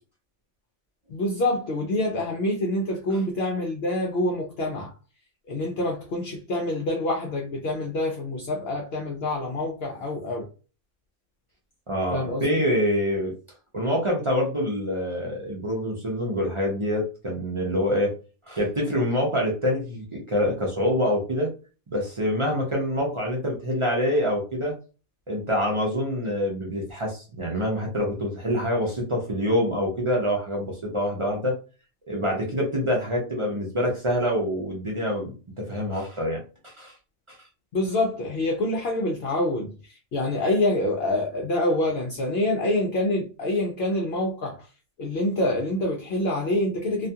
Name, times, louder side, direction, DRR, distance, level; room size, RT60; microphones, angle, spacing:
voice 1, 1.1-4.9 5.5-10.5 12.1-12.6 37.7-44.7 45.0-47.1, left 1 dB, 60° left, 0.7 m, -26 dB
voice 2, 11.9-13.3 13.7-18.1 18.5-21.5 21.9-24.7 25.3-31.5 32.1-36.9 37.3-37.4, equal, 50° right, 0.3 m, -26 dB
2.4 x 2.3 x 2.7 m
omnidirectional pair, 1.4 m